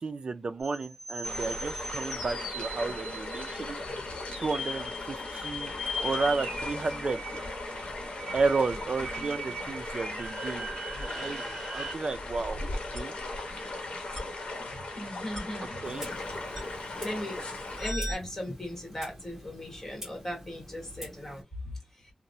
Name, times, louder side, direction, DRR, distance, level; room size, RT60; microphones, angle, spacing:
voice 1, 0.0-3.8 4.4-5.7 6.0-7.2 8.3-11.5 11.7-12.6 12.9-13.2 15.8-16.1, right 4 dB, 50° right, 0.3 m, -32 dB
sound 1, 0.6-11.9 12.9-13.0 14.1-14.2 15.3-15.4 16.6-16.7 17.8-18.1, equal, ahead, 1.4 m, -38 dB
sound 2, 1.2-17.9, left 2 dB, 70° left, 0.9 m, -38 dB
voice 2, 14.7-16.2 16.9-22.1, left 1 dB, 20° left, 1.2 m, -39 dB
Clock, 15.8-21.4, equal, 15° right, 1.1 m, -47 dB
2.9 x 2.0 x 2.5 m
wide cardioid pair, 125°, 2 cm